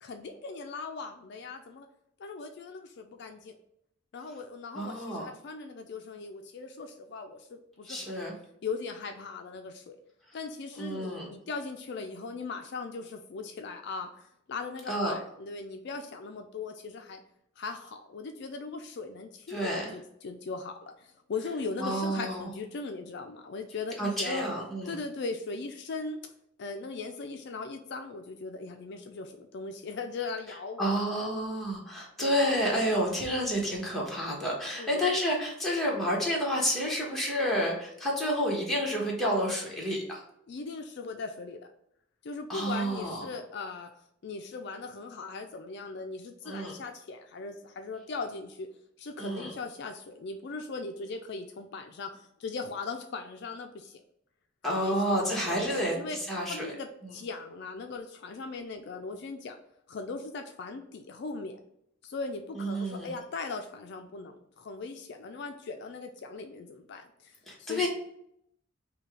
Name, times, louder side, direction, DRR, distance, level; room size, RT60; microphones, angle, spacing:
voice 1, 0.0-1.9 2.2-3.6 4.1-8.1 8.6-10.0 10.3-17.2 17.6-24.4 24.9-26.3 26.6-31.3 32.2-32.4 34.8-35.1 40.5-41.7 42.2-43.9 44.2-48.7 49.0-54.0 54.7-56.2 56.5-59.6 59.9-61.6 62.0-67.9, left 4 dB, 60° left, 6 dB, 0.4 m, -39 dB
voice 2, 4.7-5.2 7.8-8.3 10.7-11.3 14.9-15.1 19.5-19.9 21.8-22.5 24.0-24.9 30.8-40.2 42.5-43.3 46.4-46.7 49.2-49.5 54.6-56.0 56.3-56.7 57.0-57.1 62.6-63.1 67.5-67.9, equal, ahead, -4 dB, 1.2 m, -29 dB
5.5 x 2.3 x 3.3 m, 0.74 s
head